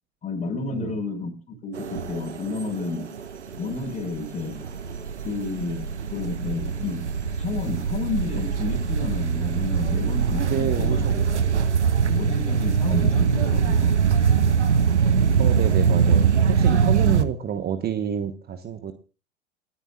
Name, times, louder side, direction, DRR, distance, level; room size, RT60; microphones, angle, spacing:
voice 1, 0.2-3.1 3.6-4.6 5.2-7.0 7.3-11.0 12.0-14.0, left 3 dB, 20° left, 2 dB, 5.4 m, -31 dB
sound 1, 1.7-17.2, right 6 dB, 85° right, 1.1 m, -22 dB
voice 2, 10.4-11.4 15.4-18.9, right 8 dB, 30° right, 9 dB, 1.2 m, -29 dB
29.0 x 10.0 x 2.5 m, 0.34 s
figure-of-eight pair, 85°, 34 cm